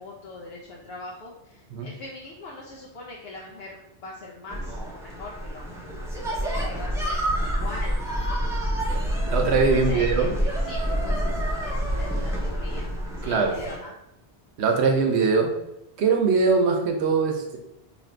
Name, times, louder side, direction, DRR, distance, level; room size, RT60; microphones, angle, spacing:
voice 1, 0.0-3.8 4.0-5.7 6.1-8.0 9.7-12.9 13.2-13.9, left 2 dB, 75° left, -3 dB, 0.8 m, -41 dB
sound 1, 4.5-13.8, equal, 5° right, 0.6 m, -27 dB
voice 2, 9.3-10.3 13.2-13.6 14.6-15.6 16.0-17.6, right 4 dB, 85° right, 3 dB, 0.9 m, -22 dB
3.0 x 2.5 x 4.3 m, 0.87 s
omnidirectional pair, 1.1 m